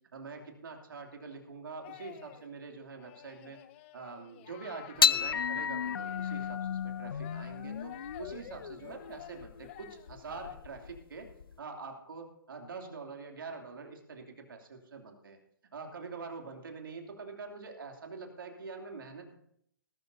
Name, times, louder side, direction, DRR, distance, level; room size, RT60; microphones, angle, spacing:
voice 1, 0.1-3.6 3.9-11.3 11.6-15.4 15.7-19.4, right 4 dB, 70° right, 3 dB, 2.8 m, -45 dB
sound 1, 1.8-2.5 3.0-6.5 7.2-10.6, left 14 dB, 30° left, 0.5 m, -51 dB
sound 2, 5.0-11.5, left 7 dB, 85° left, 0.4 m, -33 dB
19.5 x 12.5 x 2.7 m, 0.71 s
hypercardioid pair, 145°, 12 cm